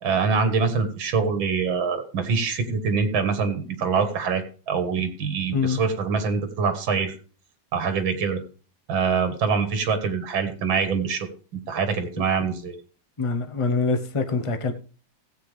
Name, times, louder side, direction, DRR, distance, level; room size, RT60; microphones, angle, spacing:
voice 1, 0.0-7.1 7.7-8.4 8.9-12.8, right 5 dB, 90° right, 9 dB, 2.1 m, -24 dB
voice 2, 13.2-14.7, left 4 dB, 30° left, 6 dB, 0.6 m, -24 dB
16.5 x 8.0 x 3.3 m, 0.38 s
omnidirectional pair, 2.1 m